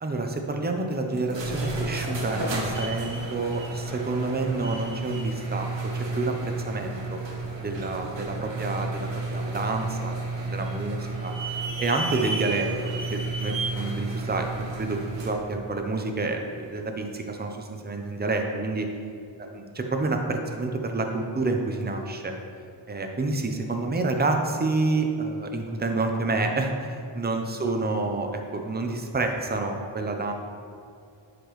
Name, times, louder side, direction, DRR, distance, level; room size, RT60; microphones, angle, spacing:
voice 1, 0.0-5.7 5.9-7.2 7.6-11.3 11.8-18.9 19.4-22.3 22.9-30.3, right 3 dB, 20° right, 3 dB, 0.7 m, -29 dB
sound 1, 1.2-15.4, right 3 dB, 65° right, 1.2 m, -32 dB
10.0 x 5.1 x 3.2 m, 2.3 s
wide cardioid pair, 110°, 48 cm